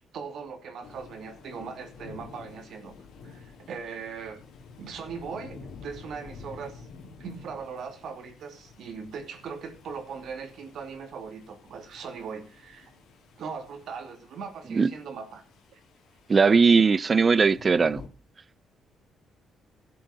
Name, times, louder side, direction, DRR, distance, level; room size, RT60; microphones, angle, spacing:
voice 1, 0.1-3.0 3.2-4.4 4.8-6.9 7.2-12.9 13.4-15.4 15.7-15.8, right 5 dB, 70° right, 2.8 m, -39 dB
sound 1, 0.8-18.1, left 5 dB, 80° left, 3.3 m, -50 dB
voice 2, 16.3-18.0, right 5 dB, 35° right, 0.5 m, -19 dB
12.0 x 7.7 x 6.6 m
cardioid pair, 90°, 0 cm